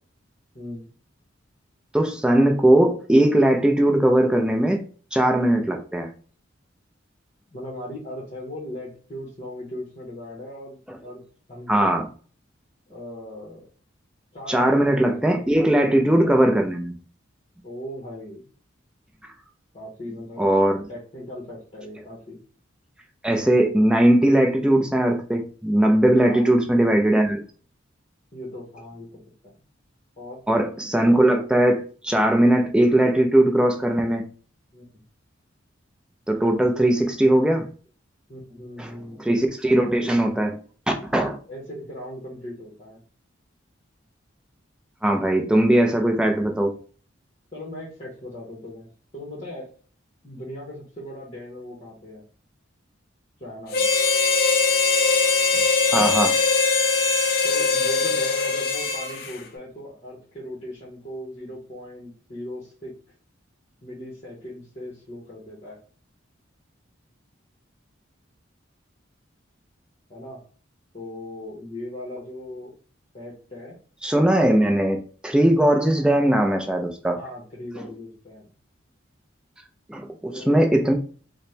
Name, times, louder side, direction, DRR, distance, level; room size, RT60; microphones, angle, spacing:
voice 1, 0.5-0.9 7.5-11.2 11.5-11.9 12.9-13.7 14.3-15.4 17.6-18.4 19.7-20.5 20.9-22.4 26.2-26.5 28.3-29.5 30.2-30.4 34.7-35.0 36.9-37.0 38.3-39.3 39.7-40.1 41.5-43.0 47.5-49.7 50.2-52.2 53.4-53.9 57.4-62.9 63.8-65.8 70.1-70.4 70.9-72.7 73.1-73.8 77.1-78.5 80.3-80.9, left 1 dB, 30° left, 1.0 m, -38 dB
voice 2, 1.9-4.8 5.1-6.1 10.9-11.0 11.7-12.0 14.5-16.9 20.4-20.9 23.2-27.4 30.5-34.2 36.3-37.7 38.8-38.9 39.2-40.5 40.9-41.4 45.0-46.7 55.9-56.4 74.0-77.2 77.8-77.9 79.9-80.9, right 1 dB, 5° right, 0.4 m, -19 dB
Harmonica, 53.7-59.4, left 4 dB, 50° left, 0.5 m, -21 dB
4.1 x 2.1 x 3.2 m
head